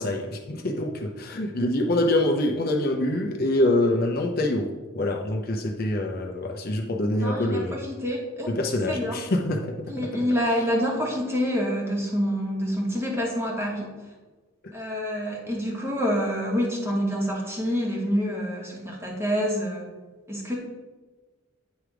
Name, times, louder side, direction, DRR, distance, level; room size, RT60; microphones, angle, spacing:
voice 1, 0.0-4.7 4.9-7.7 8.5-9.7, left 1 dB, 45° left, 2 dB, 0.6 m, -25 dB
voice 2, 7.2-8.6 8.9-9.2 9.9-13.9 14.7-19.9 20.3-20.6, equal, 10° right, -2 dB, 1.2 m, -27 dB
9.0 x 3.4 x 4.8 m, 1.3 s
head